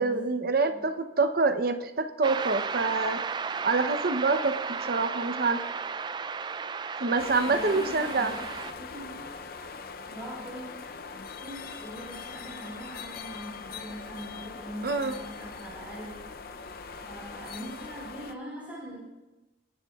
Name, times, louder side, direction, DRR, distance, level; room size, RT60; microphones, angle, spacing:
voice 1, 0.0-3.2 3.6-4.5 4.8-5.6 7.0-8.3 14.8-15.2, right 3 dB, 55° right, 7 dB, 0.7 m, -26 dB
sound 1, 2.2-8.7, right 5 dB, 25° right, 0.3 m, -34 dB
sound 2, 7.2-18.3, left 5 dB, 55° left, 0.6 m, -41 dB
voice 2, 7.5-8.4 8.8-9.2 10.1-10.7 11.4-16.5 17.0-19.0, equal, 10° right, -7 dB, 4.3 m, -42 dB
25.5 x 11.0 x 2.4 m, 1.1 s
head